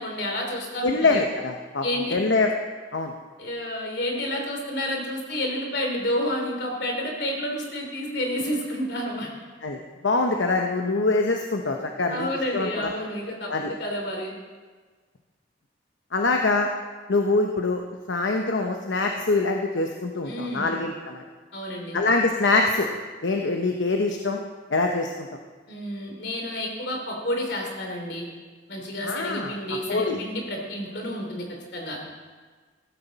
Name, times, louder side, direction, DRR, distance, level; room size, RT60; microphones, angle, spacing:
voice 1, 0.0-1.2 1.8-2.1 3.4-9.3 12.1-14.3 20.3-20.7 21.5-22.0 25.7-28.3 28.7-31.4 31.7-32.0, left 1 dB, 65° left, 1 dB, 3.1 m, -30 dB
voice 2, 0.8-1.8 2.1-2.5 2.9-3.1 9.6-12.9 13.5-13.7 16.1-16.7 17.1-17.8 18.1-21.2 21.9-22.9 23.2-24.4 24.7-25.3 29.0-29.5 29.9-30.2, left 3 dB, 80° left, 3 dB, 0.9 m, -24 dB
15.5 x 13.5 x 4.1 m, 1.4 s
head